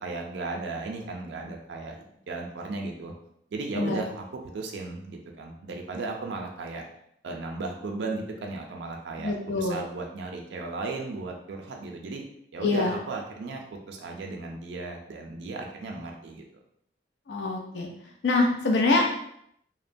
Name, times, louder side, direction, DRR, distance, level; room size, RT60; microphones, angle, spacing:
voice 1, 0.0-3.1 3.5-6.8 7.2-12.2 12.5-16.4, right 3 dB, 75° right, 1 dB, 0.4 m, -35 dB
voice 2, 9.2-9.8 12.6-13.0 17.3-17.9 18.2-19.2, left 3 dB, 75° left, 1 dB, 0.4 m, -25 dB
2.9 x 2.1 x 2.5 m, 0.72 s
head